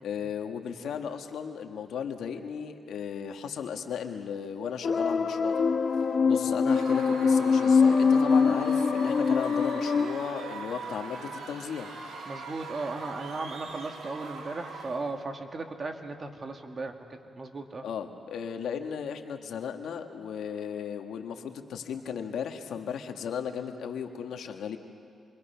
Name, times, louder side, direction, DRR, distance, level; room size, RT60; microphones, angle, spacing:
voice 1, 0.0-5.5 6.2-11.9 17.8-24.8, left 7 dB, 80° left, 5 dB, 1.5 m, -36 dB
sound 1, 4.8-10.1, left 5 dB, 55° left, 1.1 m, -23 dB
Screaming / Cheering / Crowd, 6.6-15.2, right 4 dB, 75° right, 2.7 m, -41 dB
voice 2, 12.3-17.9, right 3 dB, 40° right, 4 dB, 2.0 m, -37 dB
27.5 x 23.5 x 5.8 m, 2.5 s
cardioid pair, 80°, 0 cm